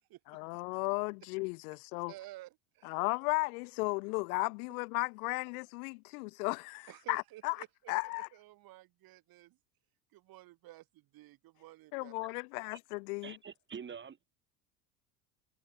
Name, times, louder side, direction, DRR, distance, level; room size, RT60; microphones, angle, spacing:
voice 1, 0.3-2.1 2.8-8.3 11.9-13.3, left 28 dB, 60° left, 1.1 m, -35 dB
voice 2, 2.1-2.9 6.9-9.6 10.1-12.1, right 17 dB, 45° right, 1.8 m, -53 dB
voice 3, 13.2-14.2, right 7 dB, 20° right, 1.9 m, -46 dB
hypercardioid pair, 80°, 50 cm